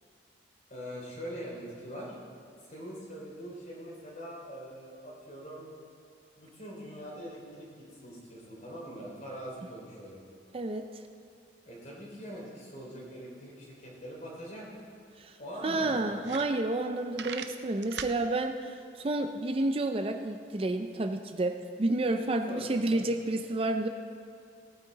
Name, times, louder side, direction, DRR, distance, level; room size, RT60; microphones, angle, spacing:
voice 1, 0.7-2.2 2.6-5.7 6.4-10.2 11.6-14.7 15.4-16.2 22.5-23.1, equal, 45° left, -3 dB, 3.2 m, -43 dB
voice 2, 10.5-10.9 15.2-15.3 15.6-23.9, right 2 dB, 30° right, 6 dB, 0.5 m, -30 dB
sound 1, 15.2-15.3 15.8-15.9 16.2-16.9 17.1-18.2, right 7 dB, 75° right, 0.6 m, -39 dB
17.0 x 9.2 x 4.0 m, 2.4 s
head